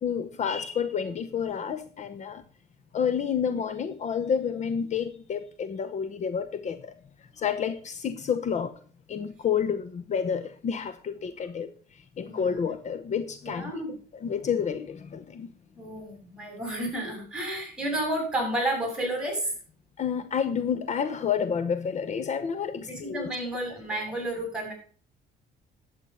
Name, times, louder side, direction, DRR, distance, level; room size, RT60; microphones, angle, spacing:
voice 1, 0.0-2.4 2.9-6.9 7.3-8.7 9.1-13.8 14.2-15.5 20.0-23.3, left 7 dB, 45° left, 0.9 m, -29 dB
voice 2, 13.4-14.0 15.8-19.5 22.9-24.7, right 1 dB, 5° right, 7.5 m, -31 dB
11.5 x 8.5 x 5.5 m
cardioid pair, 110°, 17 cm